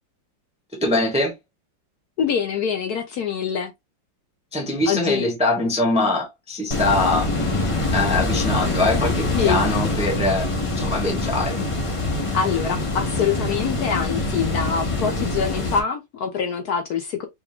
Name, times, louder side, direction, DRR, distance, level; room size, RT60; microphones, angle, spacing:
voice 1, 0.8-1.3 4.5-7.3 7.9-11.6, left 2 dB, 5° right, 0.7 m, -23 dB
voice 2, 2.2-3.7 4.9-5.3 9.3-9.6 12.3-17.3, left 7 dB, 65° left, 1.1 m, -24 dB
sound 1, 6.7-15.8, left 2 dB, 40° left, 0.4 m, -24 dB
4.8 x 2.1 x 3.5 m
omnidirectional pair, 2.1 m